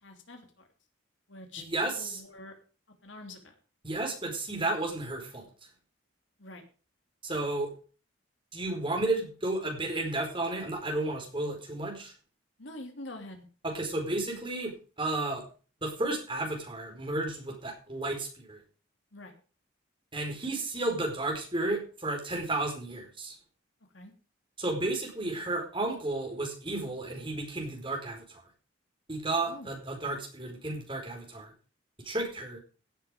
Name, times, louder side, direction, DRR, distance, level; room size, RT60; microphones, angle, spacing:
voice 1, 0.0-0.7 1.3-1.6 2.0-2.5 3.0-3.5 6.4-6.6 12.6-13.4 19.1-19.3 23.9-24.1 29.4-29.7, left 2 dB, 65° left, 4 dB, 3.0 m, -45 dB
voice 2, 1.6-2.2 3.8-5.4 7.2-7.7 8.5-12.1 13.6-15.4 15.8-18.6 20.1-23.3 24.6-28.4 29.1-31.5 32.0-32.6, right 2 dB, 25° right, 1 dB, 4.8 m, -32 dB
16.5 x 7.9 x 5.1 m, 0.37 s
head